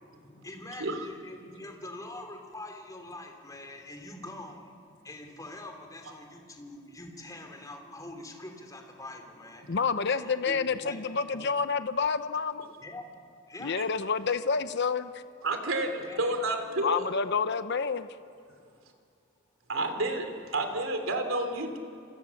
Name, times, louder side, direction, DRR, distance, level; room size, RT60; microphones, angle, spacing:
voice 1, 0.0-4.8 5.0-9.8 10.1-11.5 12.8-13.1 13.5-13.8 15.7-16.3, left 2 dB, 15° left, 3 dB, 3.1 m, -44 dB
voice 2, 9.7-12.7 13.6-15.2 16.8-18.1, left 5 dB, 55° left, 11 dB, 0.8 m, -29 dB
voice 3, 15.4-17.1 19.7-21.8, right 2 dB, 75° right, 6 dB, 3.1 m, -30 dB
28.0 x 26.0 x 7.2 m, 2.4 s
head